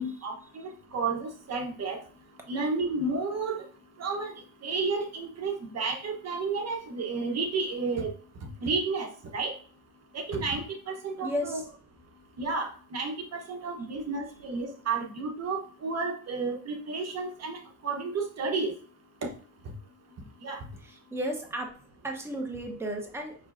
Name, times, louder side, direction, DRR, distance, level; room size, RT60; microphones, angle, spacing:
voice 1, 0.0-2.0 2.5-3.6 4.0-4.3 4.6-8.1 8.6-9.5 10.1-11.6 12.4-17.6 17.8-18.7 20.4-20.6, right 4 dB, 50° right, 3 dB, 1.1 m, -31 dB
voice 2, 11.2-11.6 20.8-21.7 22.0-23.3, equal, 5° right, 1 dB, 1.0 m, -33 dB
6.0 x 3.2 x 2.5 m, 0.42 s
cardioid pair, 90°, 34 cm